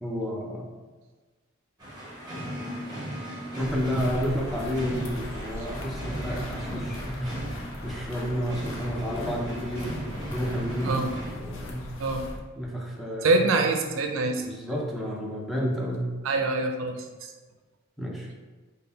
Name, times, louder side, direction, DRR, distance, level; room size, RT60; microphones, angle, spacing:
voice 1, 0.0-0.6 3.6-9.9 10.3-10.9 11.3-11.9 12.6-13.5 14.4-16.1 18.0-18.3, equal, ahead, -4 dB, 0.5 m, -31 dB
sound 1, 1.8-11.3, equal, 20° right, 1.0 m, -36 dB
sound 2, 3.6-12.4, left 1 dB, 75° left, 0.6 m, -39 dB
voice 2, 13.2-14.5 16.2-17.0, right 3 dB, 75° right, 4 dB, 0.4 m, -24 dB
3.7 x 2.2 x 3.9 m, 1.3 s
head